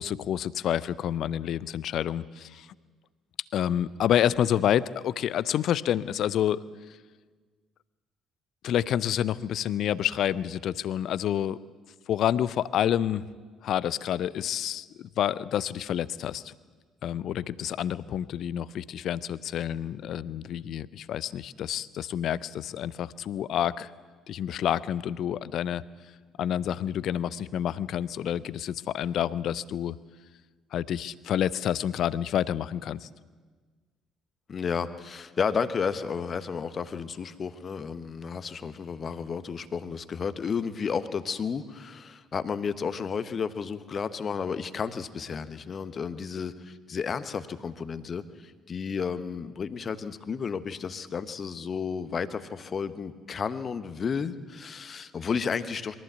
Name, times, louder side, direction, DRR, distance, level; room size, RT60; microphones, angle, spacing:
voice 1, 0.0-2.7 3.5-6.6 8.6-11.6 12.1-13.2 13.6-16.5 17.0-23.9 24.3-25.8 26.4-30.0 30.7-33.1, left 10 dB, 60° left, 19 dB, 0.6 m, -28 dB
voice 2, 34.5-55.9, left 6 dB, 45° left, 12 dB, 1.2 m, -32 dB
22.0 x 15.0 x 8.2 m, 1.4 s
hypercardioid pair, 50°, 0 cm